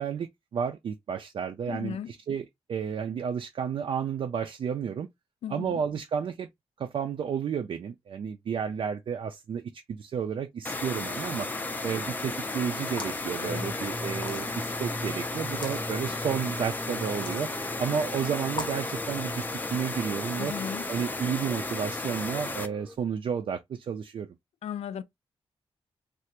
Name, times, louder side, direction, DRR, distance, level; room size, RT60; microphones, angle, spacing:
voice 1, 0.0-2.0 2.3-5.1 5.5-6.5 6.8-9.6 9.9-11.5 11.8-17.5 17.8-20.5 20.9-24.3, right 7 dB, 55° right, 0.4 m, -31 dB
voice 2, 1.7-2.1 5.4-5.8 13.4-13.8 20.4-20.8 24.6-25.0, left 9 dB, 85° left, 0.4 m, -36 dB
sound 1, 10.6-22.7, left 2 dB, 15° left, 0.4 m, -34 dB
sound 2, 12.9-13.3 14.1-14.7 15.5-15.8 17.0-17.5 18.5-18.9, left 3 dB, 50° left, 0.7 m, -39 dB
sound 3, 13.5-22.9, equal, 5° right, 0.7 m, -41 dB
3.3 x 2.5 x 2.9 m
wide cardioid pair, 140°, 10 cm